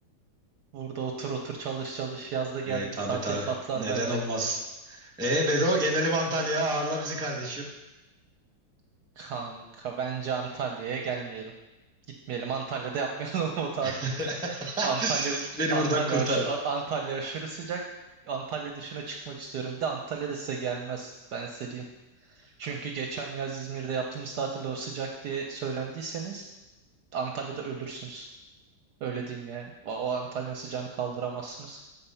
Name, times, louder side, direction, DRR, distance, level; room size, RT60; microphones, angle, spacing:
voice 1, 0.7-4.2 9.2-11.5 12.1-14.2 14.5-15.4 15.7-17.8 18.3-21.8 22.2-26.5 27.1-28.3 29.0-31.8, right 6 dB, 70° right, 2 dB, 1.0 m, -33 dB
voice 2, 2.7-4.6 4.9-7.7 13.8-16.4, right 1 dB, 5° right, -2 dB, 0.9 m, -28 dB
7.8 x 4.3 x 5.5 m, 1.1 s
omnidirectional pair, 2.1 m